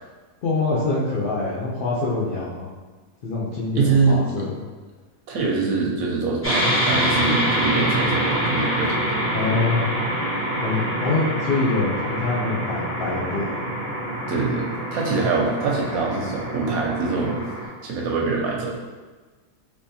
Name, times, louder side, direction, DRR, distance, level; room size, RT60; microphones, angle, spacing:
voice 1, 0.4-2.7 3.2-4.6 9.3-9.9 10.6-13.6, left 3 dB, 70° left, -7 dB, 0.5 m, -25 dB
voice 2, 3.8-4.2 5.3-9.2 14.3-17.5 17.8-18.8, right 4 dB, 70° right, -1 dB, 1.0 m, -24 dB
sound 1, 6.4-17.7, equal, 15° left, 0.5 m, -25 dB
3.5 x 3.0 x 2.7 m, 1.3 s
omnidirectional pair, 1.7 m